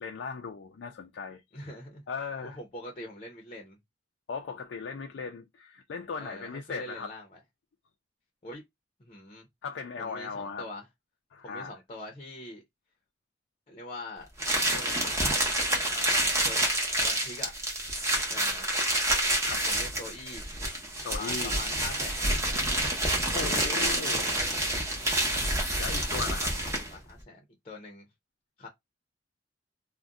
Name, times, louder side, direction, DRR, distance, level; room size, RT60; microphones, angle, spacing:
voice 1, 0.0-1.7 2.1-2.6 4.3-7.1 9.6-10.7 11.3-11.7 19.4-19.6 21.0-21.5 23.3-24.6 25.8-26.6, left 5 dB, 80° left, 0.4 m, -38 dB
voice 2, 1.5-2.0 2.4-3.8 6.1-7.4 8.4-8.6 9.0-9.5 10.0-10.9 11.4-12.6 13.7-14.3 14.7-15.2 15.9-16.2 16.4-16.6 17.0-17.5 18.3-18.7 19.6-20.5 21.1-22.8 26.3-28.1 28.6-28.7, left 1 dB, 35° left, 0.6 m, -43 dB
sound 1, 14.4-27.0, right 1 dB, 15° right, 0.9 m, -28 dB
2.5 x 2.1 x 3.5 m
head